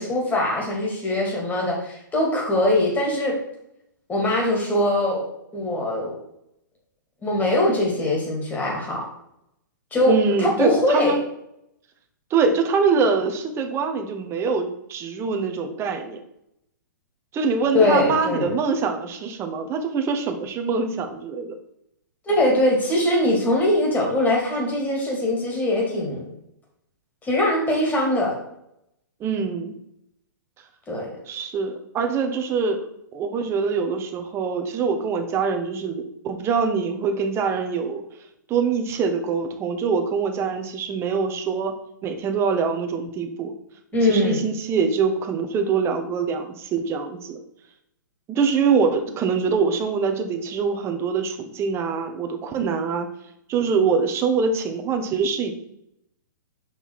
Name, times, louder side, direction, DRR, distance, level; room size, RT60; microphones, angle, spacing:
voice 1, 0.0-3.4 4.1-5.3 5.5-6.1 7.2-9.1 9.9-11.1 17.7-18.5 22.3-26.3 27.2-28.4 30.9-31.1 43.9-44.4, left 1 dB, 15° left, -1 dB, 2.5 m, -22 dB
voice 2, 10.1-11.2 12.3-16.2 17.3-21.6 29.2-29.7 31.3-32.9 33.1-38.0 38.5-41.7 42.0-43.5 44.0-47.4 48.3-53.1 53.5-55.5, right 5 dB, 25° right, 5 dB, 1.1 m, -24 dB
5.9 x 5.3 x 4.7 m, 0.79 s
hypercardioid pair, 120°, 11 cm